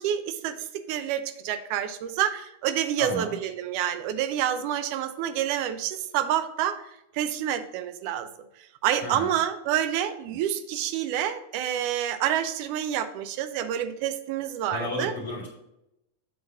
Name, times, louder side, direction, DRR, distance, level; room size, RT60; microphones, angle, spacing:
voice 1, 0.0-6.8 7.1-8.3 8.8-15.1, right 10 dB, 45° right, 10 dB, 0.6 m, -28 dB
voice 2, 3.0-3.4 9.0-9.3 14.7-15.5, left 1 dB, 65° left, -1 dB, 1.9 m, -33 dB
7.6 x 3.9 x 5.6 m, 0.88 s
figure-of-eight pair, 90°, 0 cm